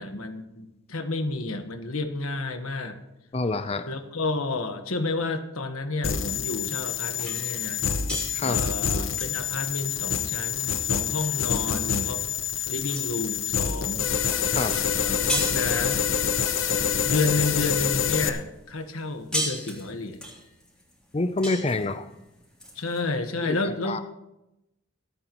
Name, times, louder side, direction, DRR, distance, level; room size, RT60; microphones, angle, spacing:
voice 1, 0.0-3.0 3.9-7.8 8.4-12.3 12.6-14.2 15.0-16.0 17.0-20.2 22.7-24.0, left 3 dB, 90° left, 7 dB, 1.3 m, -30 dB
voice 2, 3.3-3.8 8.3-8.6 14.5-14.8 21.1-22.0 23.4-23.6 23.9-24.0, left 2 dB, 30° left, 11 dB, 0.5 m, -27 dB
sound 1, 6.0-18.3, left 7 dB, 65° left, 0.9 m, -27 dB
sound 2, 7.2-17.8 18.2-23.0, equal, 5° left, 3.0 m, -37 dB
24.0 x 9.1 x 3.1 m, 0.91 s
head